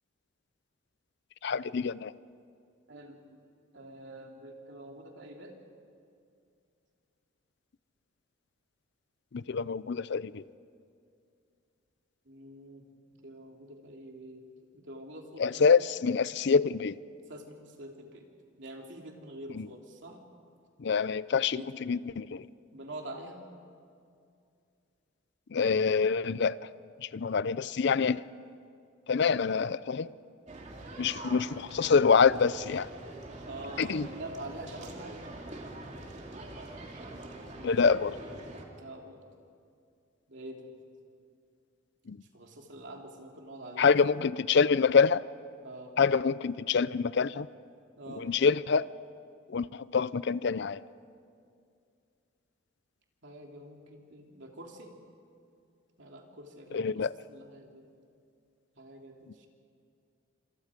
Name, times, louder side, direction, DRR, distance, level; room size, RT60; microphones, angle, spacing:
voice 1, 1.4-2.1 9.3-10.4 15.4-17.0 19.5-19.7 20.8-22.4 25.5-26.6 27.0-28.2 29.1-30.1 31.0-32.9 33.8-34.1 37.6-38.2 42.1-42.2 43.8-45.2 46.0-47.5 48.2-48.9 49.5-50.8 56.7-57.1, left 5 dB, 60° left, 18 dB, 0.5 m, -26 dB
voice 2, 2.9-3.2 3.7-5.5 12.2-14.5 14.7-15.9 17.3-18.3 18.6-20.2 21.5-21.7 22.7-23.4 33.5-35.3 38.8-39.2 40.3-40.7 42.3-44.1 45.6-46.0 48.0-48.3 53.2-54.9 56.0-57.9 58.8-59.5, right 1 dB, 65° right, 1 dB, 3.2 m, -46 dB
sound 1, 30.5-38.7, right 2 dB, 35° right, 2.6 m, -44 dB
27.5 x 26.5 x 5.2 m, 2.4 s
head